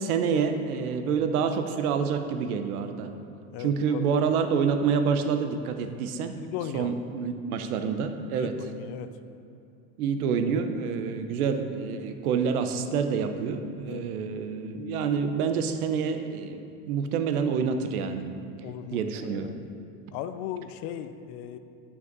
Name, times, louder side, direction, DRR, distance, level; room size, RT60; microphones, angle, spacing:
voice 1, 0.0-3.1 3.6-6.4 6.7-8.5 10.0-16.6 16.9-18.2 18.9-19.5, right 6 dB, 75° right, 7 dB, 0.9 m, -27 dB
voice 2, 3.5-4.2 6.4-7.0 8.4-9.1 13.9-14.1 18.6-19.6 20.1-21.6, left 10 dB, 50° left, 10 dB, 0.6 m, -37 dB
12.0 x 5.8 x 4.0 m, 2.6 s
supercardioid pair, 120°, 45 cm